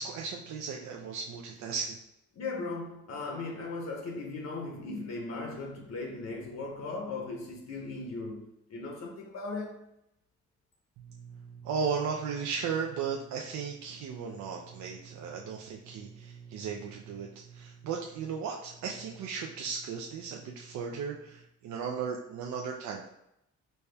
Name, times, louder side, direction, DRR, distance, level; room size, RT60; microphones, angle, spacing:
voice 1, 0.0-2.0 11.0-23.2, right 6 dB, 70° right, 0.5 m, -36 dB
voice 2, 2.3-9.8, left 3 dB, 60° left, 0.8 m, -38 dB
4.1 x 2.3 x 3.2 m
cardioid pair, 90°, 30 cm